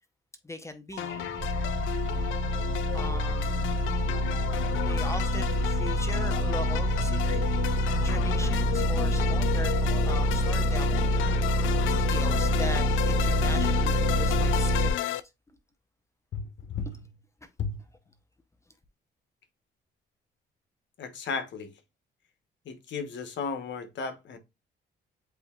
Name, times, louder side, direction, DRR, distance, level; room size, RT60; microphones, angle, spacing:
voice 1, 0.4-1.4 2.9-3.6 4.8-7.5 8.0-11.1 11.9-14.9, left 1 dB, 15° left, 0.8 m, -39 dB
sound 1, 0.9-8.1, right 8 dB, 80° right, 1.0 m, -45 dB
sound 2, 1.0-15.2, left 13 dB, 80° left, 0.4 m, -32 dB
sound 3, 1.4-14.9, equal, 35° right, 1.9 m, -26 dB
voice 2, 16.3-17.0 17.6-17.8 21.0-21.7 22.6-24.4, left 5 dB, 65° left, 1.1 m, -34 dB
7.9 x 2.8 x 2.3 m
cardioid pair, 90°, 20 cm